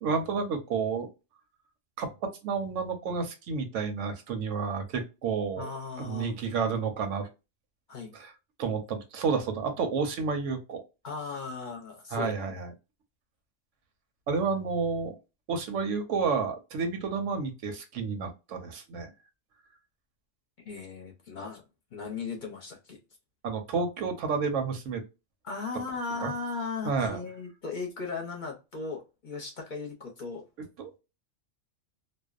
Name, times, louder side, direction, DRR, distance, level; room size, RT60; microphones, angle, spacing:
voice 1, 0.0-1.1 2.0-5.7 6.0-7.3 8.1-8.3 8.6-10.8 12.1-12.7 14.3-15.1 15.5-19.1 23.4-25.0 26.2-26.3 26.8-27.2 30.8-31.0, right 5 dB, 85° right, 1.0 m, -30 dB
voice 2, 5.6-6.3 7.9-8.1 11.0-12.4 20.6-21.6 21.9-23.0 25.4-30.4, left 4 dB, 50° left, 0.7 m, -37 dB
2.6 x 2.1 x 2.3 m
omnidirectional pair, 1.2 m